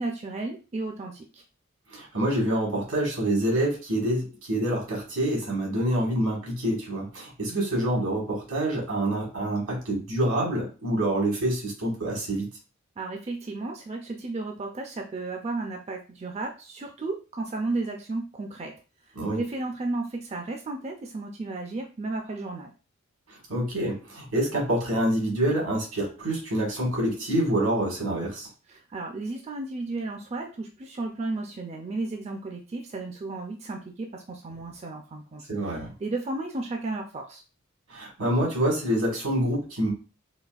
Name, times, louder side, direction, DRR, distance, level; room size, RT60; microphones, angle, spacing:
voice 1, 0.0-1.4 7.5-7.8 13.0-18.7 19.3-22.7 28.7-37.4, right 2 dB, 30° right, 2 dB, 0.4 m, -33 dB
voice 2, 1.9-12.5 19.1-19.4 23.3-28.5 35.5-35.9 37.9-39.9, right 1 dB, 90° right, -2 dB, 1.5 m, -26 dB
4.0 x 2.4 x 2.4 m, 0.33 s
head